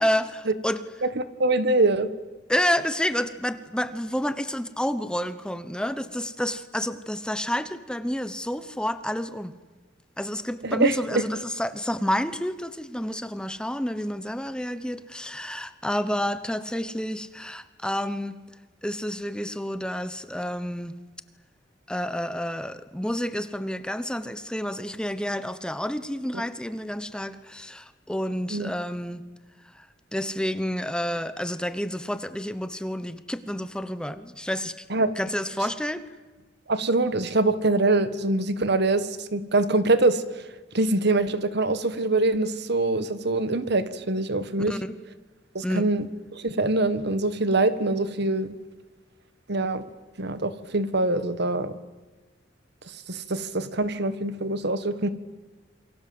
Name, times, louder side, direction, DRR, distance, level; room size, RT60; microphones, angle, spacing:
voice 1, 0.0-0.8 2.5-9.5 10.2-18.4 18.8-21.0 21.9-29.2 29.7-29.9 30.1-36.1 44.7-45.0 45.6-45.9, equal, 5° left, 12 dB, 1.0 m, -29 dB
voice 2, 1.2-2.1 10.6-11.2 28.5-28.7 34.9-35.1 36.7-40.2 40.7-44.7 45.5-46.1 46.3-48.5 49.5-49.8 50.2-51.7 53.1-55.1, right 2 dB, 60° right, 13 dB, 1.6 m, -24 dB
28.0 x 24.5 x 7.9 m, 1.2 s
head